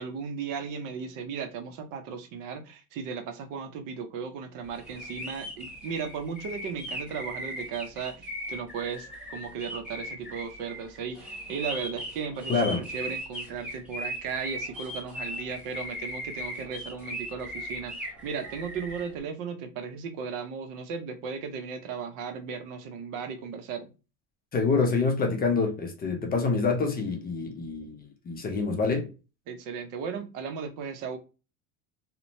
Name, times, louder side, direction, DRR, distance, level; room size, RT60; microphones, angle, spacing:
voice 1, 0.0-23.9 29.5-31.2, right 6 dB, 55° right, 0.6 m, -36 dB
sound 1, 4.8-19.1, equal, 5° right, 0.9 m, -38 dB
voice 2, 12.5-12.8 24.5-29.1, left 4 dB, 25° left, 0.5 m, -26 dB
2.9 x 2.1 x 2.6 m
cardioid pair, 130°, 37 cm